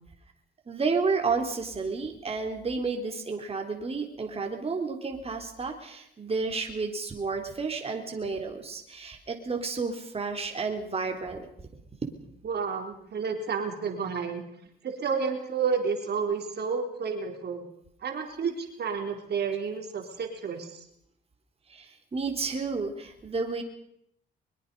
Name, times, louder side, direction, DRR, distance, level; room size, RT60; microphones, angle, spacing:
voice 1, 0.7-11.5 21.7-23.6, right 4 dB, 30° right, 3 dB, 3.8 m, -31 dB
voice 2, 12.4-14.4 14.8-17.6 18.0-20.8, right 5 dB, 55° right, 4 dB, 4.0 m, -30 dB
23.0 x 22.5 x 5.5 m, 0.73 s
cardioid pair, 90°, 20 cm